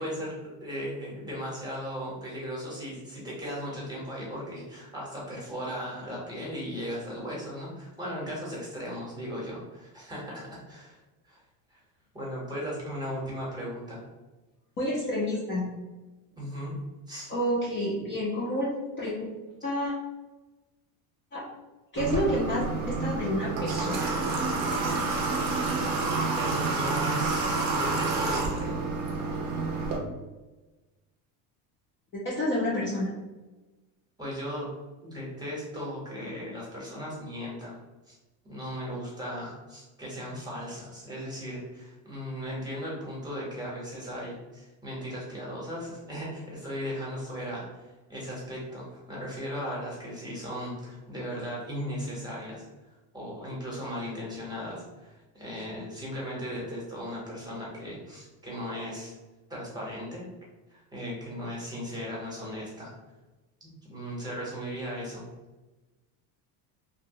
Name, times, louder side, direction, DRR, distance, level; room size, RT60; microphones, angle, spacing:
voice 1, 0.0-11.0 11.2-11.4 11.7-11.8 12.1-14.0 16.4-16.8 17.1-17.3 26.4-28.8 34.2-34.7 35.0-37.8 38.1-38.2 38.4-52.6 53.1-59.1 59.5-60.2 60.7-62.9 63.6-65.3, equal, 10° right, -6 dB, 0.8 m, -37 dB
voice 2, 14.8-15.7 17.3-18.7 19.0-19.2 19.6-19.9 21.3-21.5 21.9-24.1 32.1-33.1, equal, 30° left, -6 dB, 0.5 m, -29 dB
Water / Water tap faucet, 22.0-30.0, right 3 dB, 40° right, 0.5 m, -29 dB
2.8 x 2.1 x 2.6 m, 1.2 s
cardioid pair, 140°, 45 cm